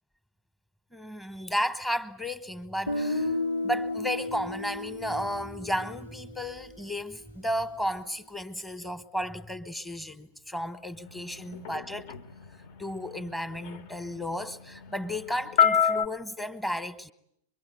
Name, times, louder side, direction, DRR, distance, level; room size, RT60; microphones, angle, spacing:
voice 1, 0.9-3.3 3.6-12.1 12.8-17.1, equal, 5° left, 1.2 m, -33 dB
Guitar, 2.9-6.8, left 2 dB, 90° left, 1.7 m, -33 dB
sound 1, 11.1-16.1, left 7 dB, 55° left, 1.2 m, -28 dB
24.5 x 23.0 x 9.3 m
figure-of-eight pair, 90°, 0 cm